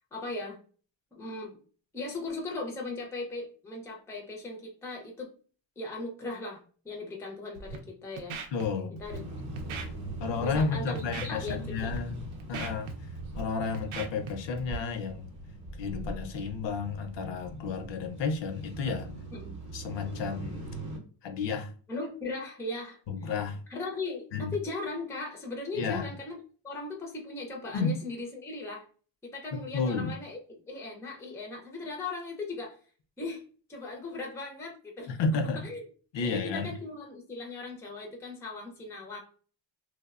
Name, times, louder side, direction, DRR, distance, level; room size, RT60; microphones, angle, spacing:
voice 1, 0.1-0.6 1.1-1.6 1.9-5.3 5.8-8.4 9.0-9.2 9.6-9.8 10.4-12.0 19.3-19.5 21.9-23.0 23.7-26.4 26.6-28.8 29.2-32.8 33.2-33.4 33.7-35.1 35.6-35.8 36.2-39.2, left 3 dB, 5° left, 0.4 m, -38 dB
Scratching (performance technique), 7.5-7.8 8.2-8.7 9.0-9.2 9.6-9.9 10.4-10.6 11.0-11.5 11.8-12.0 12.3-13.4 13.7-14.3 14.6-14.8, right 4 dB, 85° right, 0.6 m, -38 dB
voice 2, 8.5-9.0 10.2-12.2 12.5-13.1 13.3-15.3 15.8-19.2 19.7-20.7 21.2-21.7 23.1-23.6 24.3-24.5 25.7-26.1 27.7-27.9 29.5-30.1 35.1-35.7 36.1-36.7, left 4 dB, 65° left, 0.5 m, -32 dB
sound 1, 9.1-21.0, right 1 dB, 40° right, 0.7 m, -42 dB
3.0 x 2.1 x 2.3 m
cardioid pair, 155°, 46 cm